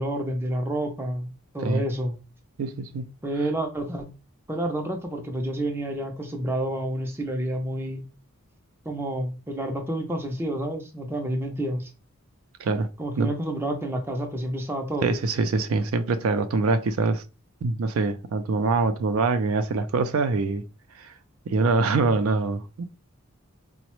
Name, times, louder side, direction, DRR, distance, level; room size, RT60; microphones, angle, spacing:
voice 1, 0.0-2.2 3.2-4.1 4.5-8.0 8.8-11.9 13.0-15.2, right 1 dB, 10° right, 0.4 m, -29 dB
voice 2, 2.6-3.0 12.6-12.9 13.2-13.3 15.0-17.2 17.6-20.6 20.9-21.1 21.5-22.8, right 3 dB, 70° right, 0.4 m, -24 dB
3.9 x 2.1 x 3.0 m
head